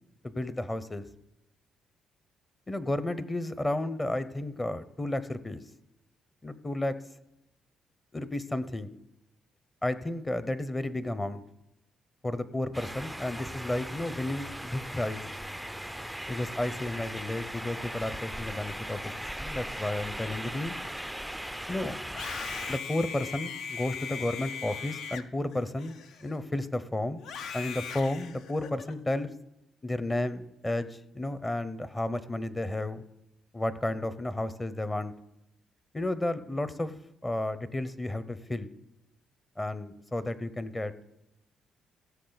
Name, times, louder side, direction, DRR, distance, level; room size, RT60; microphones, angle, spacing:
voice 1, 0.2-1.1 2.7-5.6 6.4-7.0 8.1-8.9 9.8-11.4 12.2-15.2 16.3-20.7 21.7-22.0 22.7-27.2 27.5-29.3 29.8-33.0 33.5-35.1 35.9-36.9 37.2-38.7 39.6-41.1, left 1 dB, 20° left, 13 dB, 0.7 m, -32 dB
sound 1, 12.7-22.8, equal, ahead, 0.4 m, -38 dB
Screaming, 22.0-26.6 27.2-28.9, left 6 dB, 75° left, 0.6 m, -39 dB
16.0 x 6.2 x 4.0 m, 0.85 s
cardioid pair, 90°, 0 cm